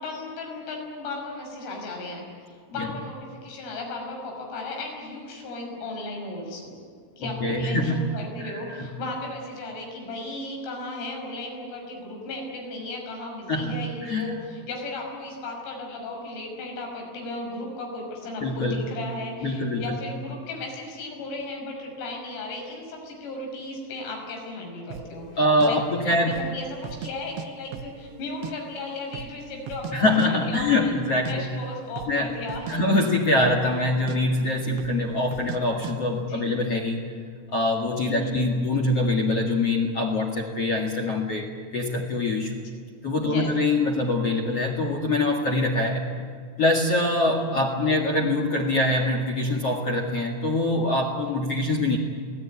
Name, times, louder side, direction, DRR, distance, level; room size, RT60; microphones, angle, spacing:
voice 1, 0.0-2.3 2.7-6.8 7.2-25.3 25.7-25.8 26.1-31.0 31.3-32.8 36.2-36.5 38.0-38.4 43.2-43.5 47.3-47.6, left 2 dB, 85° left, 1 dB, 8.6 m, -35 dB
voice 2, 7.2-8.1 8.4-8.9 13.5-14.4 18.4-18.8 19.4-20.0 25.4-26.3 29.9-31.5 32.1-32.4 32.7-37.0 37.5-42.6 43.0-46.0 46.6-52.0, left 2 dB, 50° left, 1 dB, 1.8 m, -24 dB
sound 1, 24.9-25.1 25.6-25.7 26.2-26.5 26.8-27.5 27.7-28.5 28.8-28.9 29.1-29.9 30.2-30.3 30.5-30.8 31.1-31.4 31.9-32.2 32.5-32.8 33.0-33.8 34.1-34.2 34.8-35.0 35.3-35.6 35.8-36.0, right 9 dB, 70° right, 2.8 m, -37 dB
28.0 x 19.0 x 9.7 m, 2.1 s
omnidirectional pair, 5.9 m